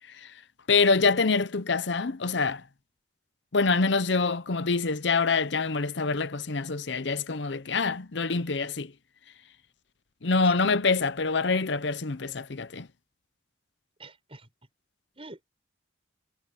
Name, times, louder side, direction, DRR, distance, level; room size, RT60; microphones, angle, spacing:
voice 1, 0.7-2.6 3.5-8.9 10.2-12.9, left 4 dB, 65° left, 0.8 m, -25 dB
voice 2, 10.4-10.8 14.0-14.5 15.1-15.5, right 2 dB, 30° right, 6.5 m, -47 dB
head